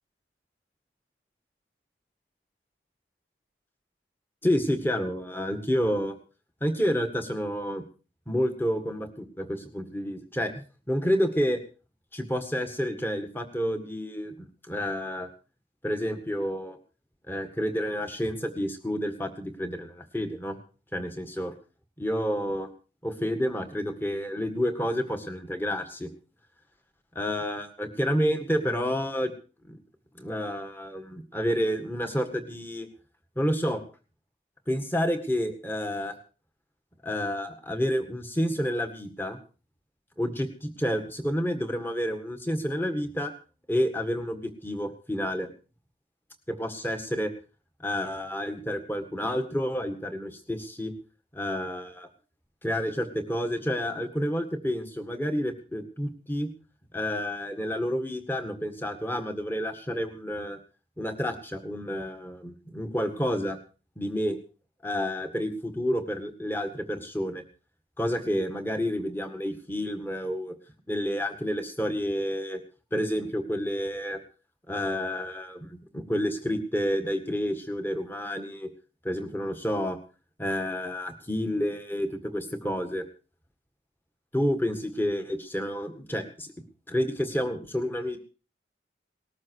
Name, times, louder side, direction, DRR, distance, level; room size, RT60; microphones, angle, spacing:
voice 1, 4.4-6.1 6.6-7.8 8.3-10.5 10.9-11.6 12.1-14.3 14.7-15.3 15.8-16.8 17.3-20.6 20.9-21.5 22.0-22.7 23.0-26.1 27.2-29.3 29.7-29.8 30.2-32.9 33.4-33.8 34.7-36.2 37.0-39.4 40.2-43.3 43.7-45.5 46.5-47.3 47.8-50.9 51.3-52.1 52.6-56.5 56.9-60.6 61.0-63.6 64.0-64.4 64.8-67.4 68.0-70.6 70.9-72.6 72.9-74.2 74.7-78.7 79.0-80.0 80.4-83.0 84.3-86.5 86.9-88.2, equal, 10° left, 6 dB, 1.9 m, -29 dB
19.5 x 13.5 x 4.7 m, 0.36 s
head